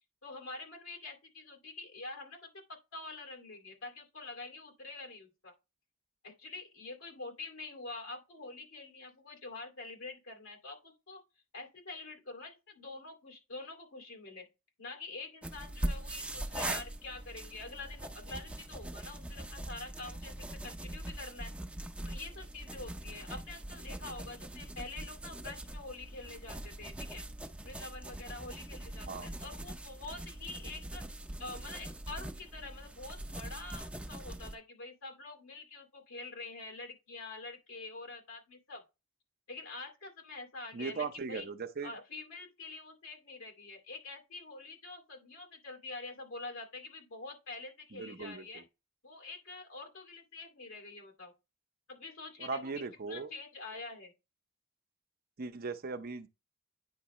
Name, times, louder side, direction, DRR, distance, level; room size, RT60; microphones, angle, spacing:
voice 1, 0.2-5.5 6.2-11.2 11.5-14.5 14.8-21.5 22.0-27.2 27.6-31.0 31.4-38.8 39.5-41.5 41.8-48.6 49.0-51.3 51.9-52.6 53.1-54.1, left 3 dB, 85° left, 2.4 m, -46 dB
sound 1, 15.4-34.5, right 1 dB, 5° right, 0.6 m, -42 dB
voice 2, 40.7-41.9 47.9-48.6 52.4-53.3 55.4-56.3, right 4 dB, 45° right, 0.6 m, -39 dB
9.4 x 4.7 x 3.0 m
head